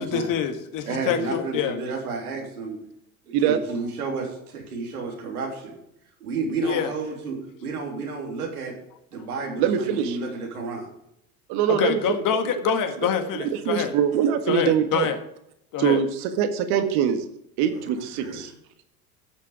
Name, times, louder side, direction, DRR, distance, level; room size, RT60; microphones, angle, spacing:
voice 1, 0.0-1.8 6.6-6.9 11.7-13.9 14.5-15.2 15.7-16.0, left 8 dB, 45° left, 7 dB, 1.8 m, -26 dB
voice 2, 0.9-2.8 3.3-5.8 6.2-8.7 9.1-10.9 17.9-18.4, right 4 dB, 85° right, 0 dB, 3.5 m, -31 dB
voice 3, 9.6-10.2 11.5-12.2 13.0-15.1 15.8-17.2 17.6-18.5, right 8 dB, 60° right, 8 dB, 1.8 m, -23 dB
12.5 x 7.5 x 5.0 m, 0.78 s
hypercardioid pair, 80°, 43 cm